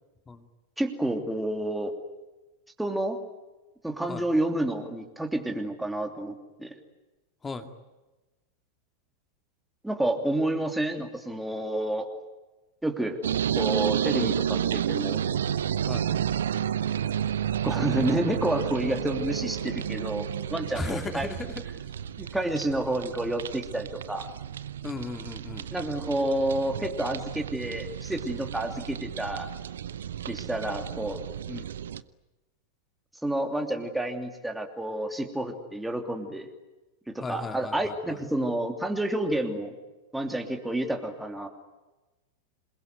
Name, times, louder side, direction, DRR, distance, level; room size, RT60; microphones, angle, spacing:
voice 1, 0.8-1.9 2.8-3.2 3.8-6.7 9.8-12.1 12.8-13.2 13.6-15.2 17.6-21.3 22.2-24.3 25.7-29.5 30.3-31.2 33.2-36.5 37.1-39.7 40.1-41.5, right 1 dB, 5° right, 3 dB, 2.9 m, -29 dB
sound 1, 13.2-32.0, right 9 dB, 65° right, 0.8 m, -31 dB
voice 2, 20.7-21.8 24.8-25.7 31.5-31.7 37.2-38.2, left 3 dB, 15° left, 7 dB, 2.3 m, -36 dB
27.5 x 21.5 x 9.5 m, 1.1 s
figure-of-eight pair, 90°, 0 cm